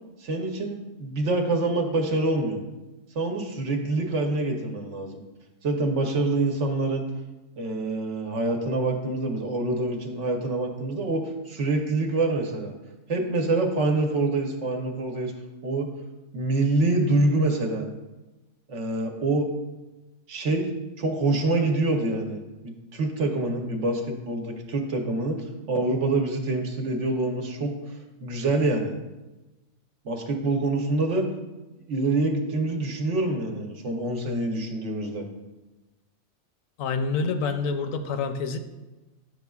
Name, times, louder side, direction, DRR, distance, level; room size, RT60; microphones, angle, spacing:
voice 1, 0.2-2.6 3.1-5.2 5.6-7.1 7.6-12.7 13.1-15.3 15.6-15.9 16.3-17.9 18.7-19.5 20.3-20.7 21.0-27.7 28.2-28.9 30.0-31.2 31.9-35.2, right 2 dB, 65° right, 3 dB, 1.1 m, -26 dB
voice 2, 36.8-38.6, left 4 dB, 80° left, 8 dB, 1.0 m, -27 dB
8.6 x 6.3 x 2.3 m, 1.1 s
omnidirectional pair, 1.4 m